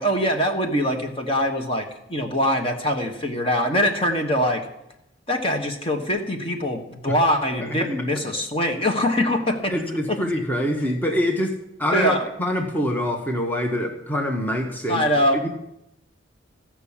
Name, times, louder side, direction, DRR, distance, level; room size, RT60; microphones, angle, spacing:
voice 1, 0.0-4.6 5.3-9.7 10.1-10.2 11.9-12.2 14.9-15.4, equal, 25° left, 4 dB, 1.2 m, -23 dB
voice 2, 7.6-7.9 9.7-11.5 11.8-12.1 12.4-15.0 15.4-15.5, equal, 10° left, 2 dB, 1.1 m, -25 dB
15.0 x 6.0 x 8.5 m, 0.85 s
head